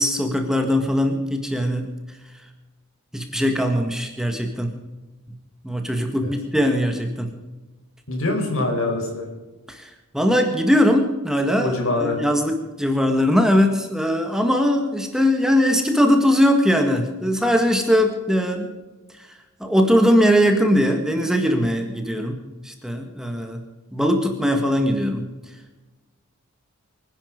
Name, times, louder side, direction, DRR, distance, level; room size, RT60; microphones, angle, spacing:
voice 1, 0.0-1.9 3.1-4.7 5.6-7.3 9.7-9.8 10.1-11.7 12.0-18.7 19.6-22.4 22.6-23.6 23.9-25.3, equal, 5° right, 4 dB, 1.7 m, -20 dB
voice 2, 8.1-9.3 11.6-12.2, left 2 dB, 65° left, 3 dB, 5.2 m, -24 dB
24.5 x 10.5 x 5.2 m, 1.2 s
head